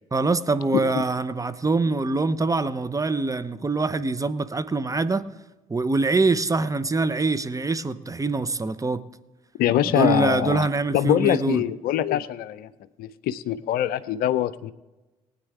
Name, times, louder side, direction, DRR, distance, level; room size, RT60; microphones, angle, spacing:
voice 1, 0.1-5.3 5.7-9.0 9.9-11.6, right 3 dB, 20° right, 13 dB, 0.8 m, -24 dB
voice 2, 9.6-10.7 10.9-12.7 13.0-14.7, left 12 dB, 60° left, 15 dB, 0.6 m, -23 dB
19.5 x 9.6 x 3.4 m, 1.1 s
figure-of-eight pair, 45°, 18 cm